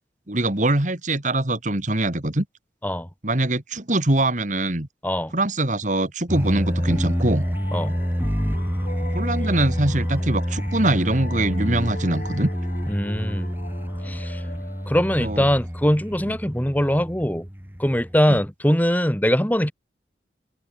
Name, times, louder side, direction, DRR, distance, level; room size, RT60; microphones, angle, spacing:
voice 1, 0.3-2.5 3.2-4.9 5.3-7.5 9.1-12.5 15.2-15.5 16.3-16.4 18.3-18.4, right 1 dB, 45° right, 2.3 m, -23 dB
voice 2, 5.0-5.3 7.7-8.0 12.9-13.5 14.0-14.4 14.9-17.5 17.8-19.7, equal, 10° left, 2.9 m, -22 dB
sound 1, 6.3-18.2, equal, 10° right, 4.7 m, -28 dB
sound 2, 6.4-15.8, left 2 dB, 45° left, 8.0 m, -41 dB
head